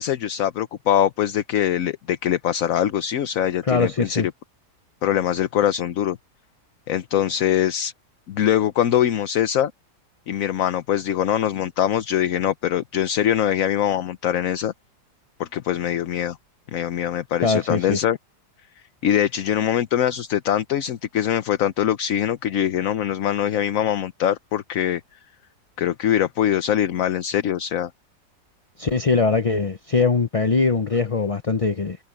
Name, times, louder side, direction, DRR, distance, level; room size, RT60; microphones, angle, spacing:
voice 1, 0.0-4.3 5.0-6.2 6.9-7.9 8.3-9.7 10.3-14.7 15.4-16.4 16.7-18.2 19.0-25.0 25.8-27.9, left 10 dB, 60° left, 1.1 m, -23 dB
voice 2, 3.6-4.3 17.4-18.0 28.8-32.0, left 4 dB, 30° left, 0.6 m, -21 dB
omnidirectional pair, 1.7 m